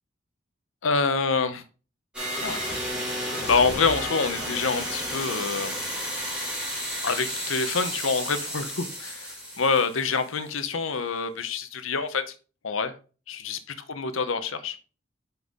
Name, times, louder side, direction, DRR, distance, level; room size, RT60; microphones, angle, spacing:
voice 1, 0.8-1.6 2.4-2.6 3.1-5.8 7.0-12.3 12.6-12.9 13.3-13.6 13.9-14.8, left 4 dB, 90° left, 11 dB, 0.8 m, -26 dB
sound 1, 2.1-10.5, equal, 5° right, 2.5 m, -32 dB
5.8 x 5.5 x 3.6 m, 0.35 s
head